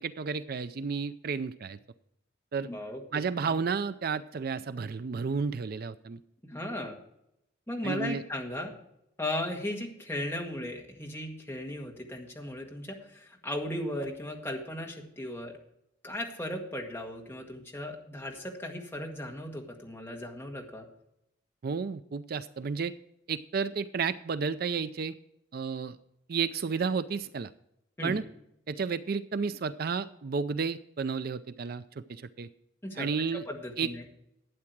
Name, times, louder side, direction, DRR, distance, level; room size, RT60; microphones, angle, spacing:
voice 1, 0.0-1.8 2.5-2.7 3.1-6.2 7.8-8.2 21.6-22.9 23.3-25.2 25.5-26.0 26.3-27.5 28.0-28.3 28.7-32.5 32.9-33.5 33.8-33.9, right 5 dB, 50° right, 14 dB, 0.4 m, -32 dB
voice 2, 2.6-3.0 3.4-3.6 6.4-7.0 7.7-8.7 9.2-15.6 16.0-20.9 28.0-28.2 32.8-34.0, left 1 dB, 10° left, 0 dB, 1.8 m, -36 dB
12.0 x 8.8 x 4.6 m, 0.80 s
head